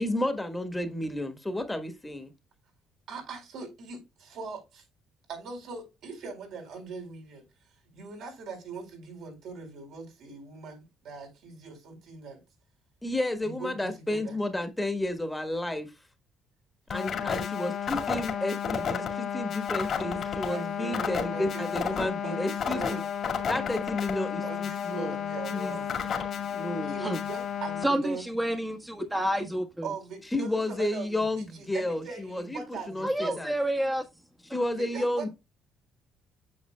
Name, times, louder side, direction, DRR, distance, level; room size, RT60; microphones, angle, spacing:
voice 1, 0.0-2.3 13.0-15.9 16.9-23.0 23.4-25.1 25.5-25.8 26.5-27.0 30.3-33.5 34.4-35.3, left 1 dB, 10° left, 1.5 m, -31 dB
voice 2, 3.1-4.8 5.3-7.4 7.9-12.4 13.4-14.4 20.4-23.0 24.4-26.0 26.5-28.3 29.8-33.4 34.8-35.3, right 5 dB, 75° right, 4.3 m, -41 dB
sound 1, 16.9-27.8, left 7 dB, 55° left, 2.1 m, -32 dB
voice 3, 27.8-29.8 33.0-34.0, right 1 dB, 5° right, 1.3 m, -29 dB
8.5 x 6.7 x 2.2 m
supercardioid pair, 75°, 0 cm